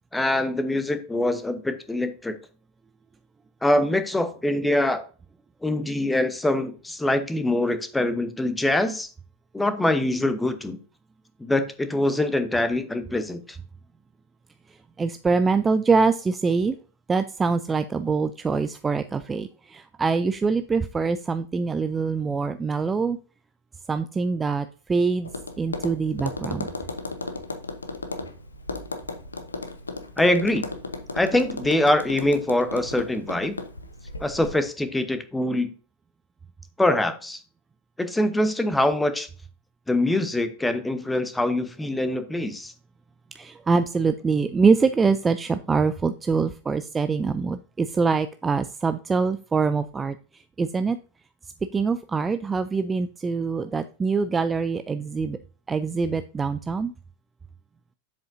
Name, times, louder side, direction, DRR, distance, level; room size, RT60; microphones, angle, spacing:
voice 1, 0.1-2.3 3.6-5.0 5.6-9.1 9.5-10.8 11.4-13.6 30.2-30.6 31.1-33.6 34.2-35.7 36.8-37.4 38.0-39.3 39.9-42.7, left 1 dB, 5° left, 11 dB, 0.9 m, -24 dB
voice 2, 15.0-16.8 17.1-23.2 23.9-25.3 25.6-26.7 43.3-51.0 51.7-55.4 55.7-56.9, right 4 dB, 15° right, 11 dB, 0.4 m, -24 dB
Tap, 25.2-34.6, left 3 dB, 80° left, 0.9 m, -35 dB
7.5 x 7.3 x 2.6 m, 0.37 s
figure-of-eight pair, 90°, 0 cm